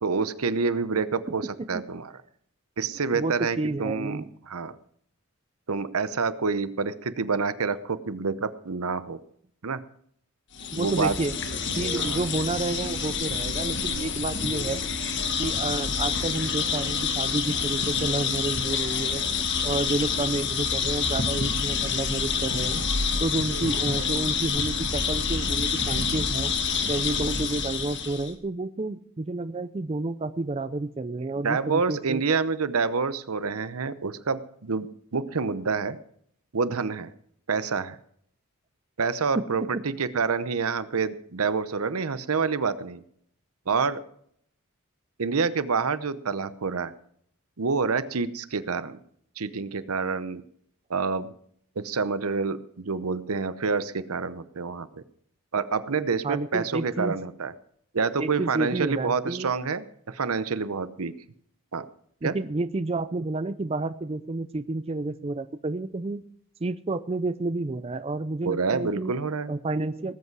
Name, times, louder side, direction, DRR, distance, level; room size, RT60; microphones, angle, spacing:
voice 1, 0.0-2.1 2.8-4.7 5.7-9.2 9.6-9.8 10.8-11.1 11.9-12.2 31.3-36.0 36.5-37.1 37.5-38.0 39.0-43.0 43.7-44.0 45.2-46.9 47.6-49.0 49.4-50.4 50.9-51.3 51.8-54.9 55.5-57.5 57.9-61.1 61.7-61.9 62.2-62.3 68.4-69.5, right 4 dB, 85° right, 14 dB, 0.8 m, -27 dB
voice 2, 3.1-4.3 10.7-11.3 11.8-14.8 15.4-19.2 19.6-22.8 23.2-26.5 26.9-32.2 39.4-39.5 39.7-39.8 56.2-57.2 58.2-59.5 62.2-66.2 66.6-69.1 69.5-70.1, right 2 dB, 25° right, 13 dB, 0.4 m, -30 dB
sound 1, 10.5-28.3, left 5 dB, 55° left, 1.5 m, -27 dB
19.0 x 8.2 x 4.7 m, 0.65 s
head